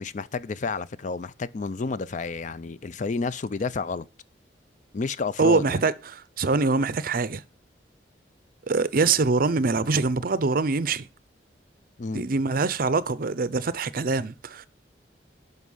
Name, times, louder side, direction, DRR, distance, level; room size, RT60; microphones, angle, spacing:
voice 1, 0.0-4.1 4.9-5.8 12.0-12.3, left 4 dB, 45° left, 0.5 m, -30 dB
voice 2, 5.4-7.4 8.7-11.0 12.1-14.7, right 4 dB, 55° right, 0.6 m, -24 dB
11.0 x 5.4 x 5.5 m
head